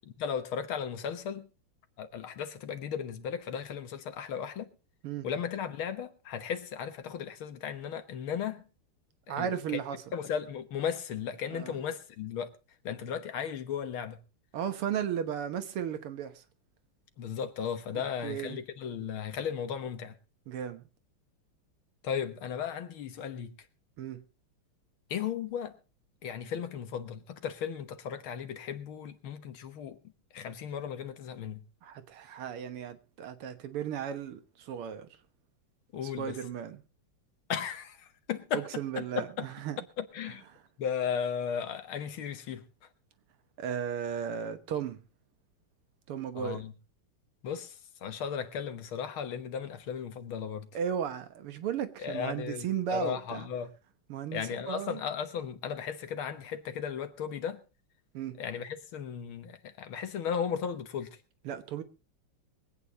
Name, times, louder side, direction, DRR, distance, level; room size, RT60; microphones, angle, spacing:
voice 1, 0.2-1.5 2.0-4.7 5.2-8.7 9.3-9.8 10.1-12.5 12.8-14.2 17.2-20.2 22.0-23.5 25.1-25.8 26.2-30.0 30.3-31.6 35.9-36.4 37.5-39.5 40.0-40.4 40.8-42.6 46.4-46.7 47.4-50.7 52.0-53.7 54.3-57.6 58.4-61.2, left 7 dB, 70° left, 2.0 m, -36 dB
voice 2, 9.3-10.0 11.5-11.7 14.5-16.4 18.2-18.6 20.5-20.9 24.0-24.2 31.8-35.1 36.2-36.8 38.5-39.8 43.6-45.0 46.1-46.6 50.7-53.5 54.1-55.0 58.1-58.4 61.5-61.8, right 8 dB, 90° right, 2.1 m, -35 dB
23.0 x 8.8 x 4.1 m
omnidirectional pair, 2.4 m